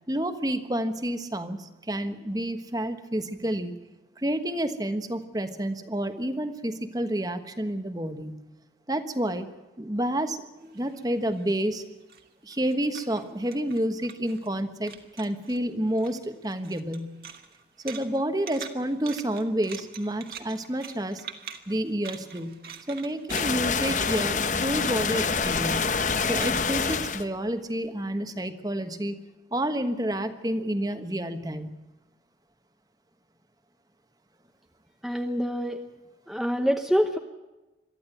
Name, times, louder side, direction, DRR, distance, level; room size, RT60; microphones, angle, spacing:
voice 1, 0.1-3.7 4.2-8.3 8.9-9.5 9.8-11.8 12.4-17.2 17.8-21.2 21.7-22.6 22.9-25.9 26.3-29.2 29.5-31.7, right 1 dB, 20° right, 9 dB, 1.3 m, -29 dB
sound 1, 10.6-14.6 14.8-15.6 15.9-27.8, right 7 dB, 60° right, 2.0 m, -45 dB
sound 2, 23.3-27.2, left 5 dB, 45° left, 1.0 m, -26 dB
voice 2, 35.0-35.8 36.3-37.2, equal, ahead, 4 dB, 0.9 m, -25 dB
23.0 x 14.0 x 9.1 m, 1.1 s
head